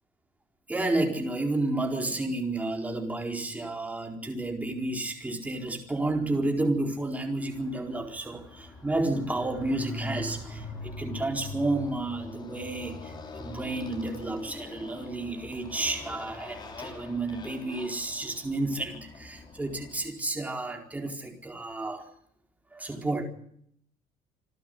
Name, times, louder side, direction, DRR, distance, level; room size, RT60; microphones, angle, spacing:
voice 1, 0.7-22.0 22.7-23.2, right 2 dB, 10° right, 3 dB, 4.4 m, -31 dB
Motorcycle, 7.4-20.1, left 2 dB, 30° left, 5.7 m, -43 dB
28.0 x 12.5 x 9.6 m, 0.69 s
cardioid pair, 140°, 14 cm